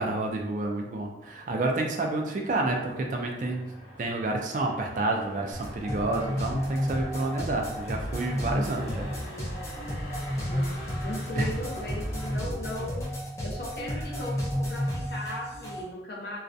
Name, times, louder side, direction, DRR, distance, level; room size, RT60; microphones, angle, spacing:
voice 1, 0.0-3.7 4.0-9.1 11.4-11.5, right 2 dB, 45° right, 1 dB, 0.3 m, -29 dB
Motor vehicle (road), 1.2-12.5, equal, 80° left, 1.0 m, -45 dB
sound 1, 5.5-15.8, equal, 15° left, 0.5 m, -32 dB
voice 2, 10.4-16.4, left 1 dB, 65° left, -2 dB, 0.6 m, -38 dB
2.3 x 2.1 x 2.5 m, 0.89 s
head